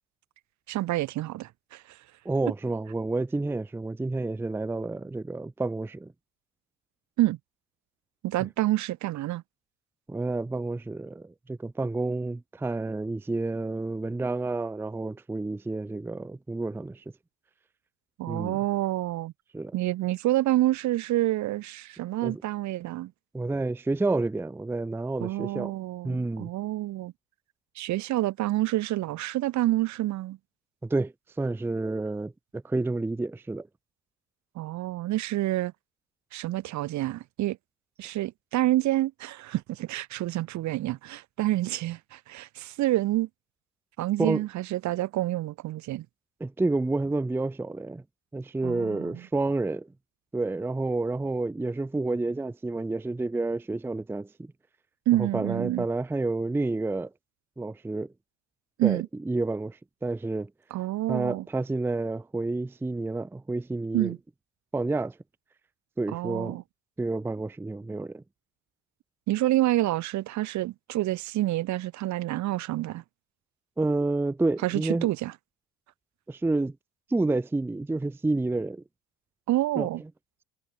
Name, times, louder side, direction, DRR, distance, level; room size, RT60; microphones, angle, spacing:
voice 1, 0.7-2.0 7.2-7.4 8.2-9.4 18.2-19.3 19.7-23.1 25.2-27.1 27.8-30.4 34.5-35.7 36.3-37.6 38.0-43.3 44.0-46.1 48.6-49.2 55.1-55.8 58.8-59.1 60.7-61.4 63.9-64.2 66.1-66.6 69.3-73.0 74.6-75.3 79.5-80.0, right 16 dB, 50° right, 1.0 m, -28 dB
voice 2, 2.2-6.1 10.1-17.0 18.3-18.6 19.5-19.7 22.2-22.4 23.3-25.7 26.0-26.5 30.8-33.7 44.2-44.4 46.4-48.0 48.3-49.9 50.3-54.5 55.2-57.1 57.6-58.1 58.8-60.5 61.1-64.1 64.7-65.2 66.0-66.6 67.0-68.2 73.8-75.1 76.3-76.8 77.1-78.8 79.8-79.9, right 2 dB, 5° right, 0.6 m, -29 dB
hypercardioid pair, 65°, 38 cm